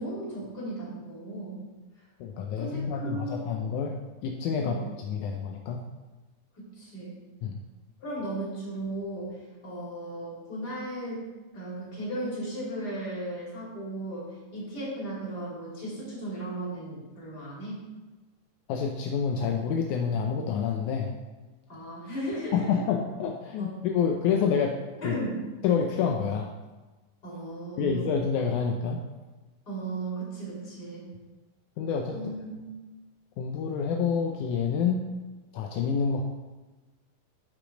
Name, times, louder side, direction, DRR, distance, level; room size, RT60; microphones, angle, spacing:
voice 1, 0.0-1.6 2.6-3.5 4.6-4.9 6.6-7.1 8.0-11.2 11.5-17.9 21.7-22.9 23.6-23.8 25.0-25.4 27.2-28.1 29.7-31.1 32.1-32.8, right 1 dB, 30° left, -6 dB, 3.6 m, -36 dB
voice 2, 2.2-5.8 7.4-7.6 18.7-21.2 22.5-24.8 25.0-25.2 25.6-26.5 27.8-29.0 31.8-32.3 33.4-35.1 35.5-36.2, left 6 dB, 80° left, 2 dB, 1.8 m, -28 dB
12.0 x 5.2 x 5.1 m, 1.2 s
omnidirectional pair, 4.2 m